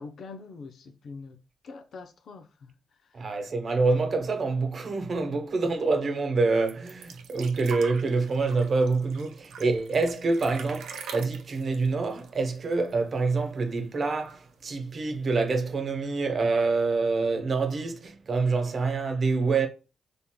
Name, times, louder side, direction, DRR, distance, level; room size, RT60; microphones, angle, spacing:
voice 1, 0.0-1.4 1.6-2.7, left 4 dB, 70° left, 0.6 m, -43 dB
voice 2, 3.1-19.7, right 3 dB, 55° right, 1.0 m, -26 dB
sound 1, 6.7-13.1 13.4-13.5 13.8-14.5 15.3-15.4, right 5 dB, 85° right, 0.7 m, -43 dB
5.7 x 3.5 x 2.2 m
cardioid pair, 65°, 0 cm